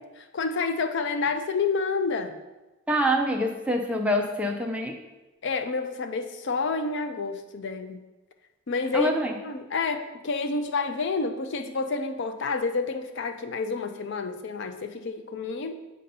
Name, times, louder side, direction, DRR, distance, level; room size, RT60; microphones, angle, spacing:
voice 1, 0.0-2.4 5.4-8.0 8.7-9.1 9.4-15.7, left 4 dB, 55° left, 7 dB, 0.4 m, -29 dB
voice 2, 2.9-5.0 8.9-9.4, equal, 5° right, 2 dB, 0.5 m, -25 dB
7.5 x 2.8 x 5.3 m, 1.1 s
head